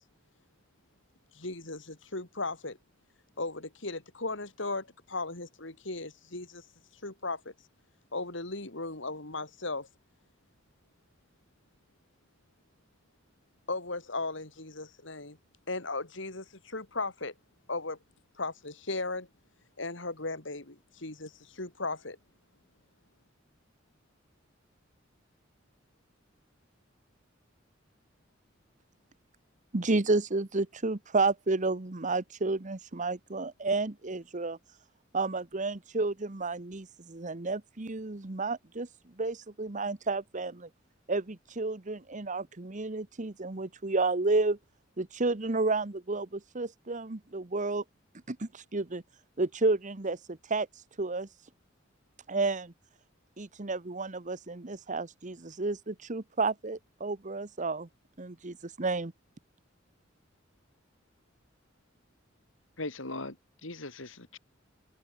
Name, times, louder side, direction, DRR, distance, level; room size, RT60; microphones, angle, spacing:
voice 1, 1.3-2.8 3.4-6.6 7.0-7.5 8.1-9.9 13.7-15.4 15.7-17.3 17.7-18.0 18.4-19.3 19.8-22.2, left 3 dB, 70° left, 3.9 m, -36 dB
voice 2, 29.7-34.6 35.1-38.9 39.2-40.7 41.1-44.6 45.0-47.8 48.3-49.0 49.4-50.7 51.0-51.3 52.3-52.7 53.4-57.9 58.2-59.1, right 3 dB, 40° right, 1.2 m, -31 dB
voice 3, 62.8-64.4, left 2 dB, 85° left, 4.3 m, -39 dB
open air
head